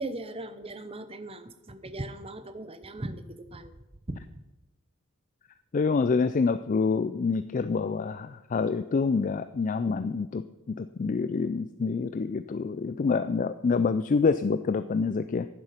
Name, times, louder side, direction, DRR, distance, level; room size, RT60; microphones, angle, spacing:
voice 1, 0.0-3.7 4.1-4.2, right 2 dB, 25° right, 12 dB, 0.8 m, -38 dB
voice 2, 5.7-10.4 10.8-15.5, left 4 dB, 35° left, 12 dB, 0.3 m, -27 dB
10.5 x 9.7 x 5.7 m, 0.99 s
head